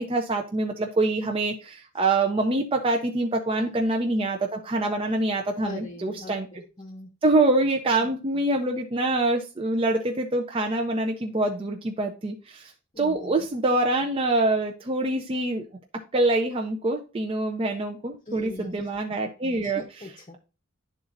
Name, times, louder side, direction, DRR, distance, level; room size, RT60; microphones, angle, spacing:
voice 1, 0.0-6.5 7.2-12.7 13.0-15.6 16.1-19.8, right 2 dB, 25° right, 2 dB, 0.5 m, -25 dB
voice 2, 5.6-7.1 8.0-8.1 12.9-13.3 18.3-18.9 19.6-20.4, left 1 dB, 30° left, 2 dB, 0.7 m, -41 dB
10.5 x 4.0 x 2.5 m, 0.32 s
head